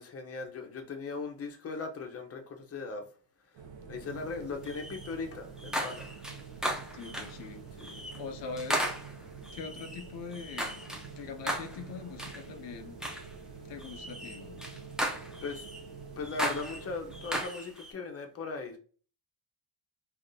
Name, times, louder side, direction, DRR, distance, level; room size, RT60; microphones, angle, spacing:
voice 1, 0.0-3.1 3.9-6.2 7.8-8.1 15.4-15.6 16.2-18.8, left 4 dB, 35° left, 0.7 m, -38 dB
sound 1, 3.5-17.5, right 5 dB, 85° right, 0.8 m, -47 dB
sound 2, 4.6-5.1 5.6-7.4 7.8-8.2 8.6-11.1 11.5-11.8 12.2-12.4 13.0-13.3 13.8-15.8 16.2-17.9, equal, ahead, 0.5 m, -36 dB
voice 2, 6.8-7.8 8.2-8.9 9.5-13.0 13.6-14.6, left 5 dB, 75° left, 0.5 m, -43 dB
3.4 x 2.4 x 2.6 m
cardioid pair, 120°, 44 cm